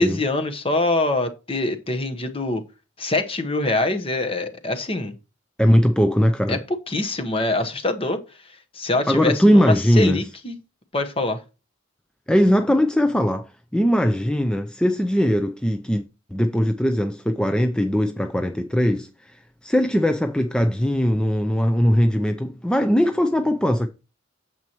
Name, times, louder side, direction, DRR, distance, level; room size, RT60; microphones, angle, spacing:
voice 1, 0.0-2.6 3.0-5.1 6.5-6.6 6.9-8.2 8.7-10.5 10.9-11.4, left 2 dB, 30° left, 1.1 m, -24 dB
voice 2, 5.6-6.6 9.1-10.2 12.3-16.0 16.3-23.9, equal, 5° left, 0.4 m, -20 dB
9.3 x 7.3 x 3.0 m
head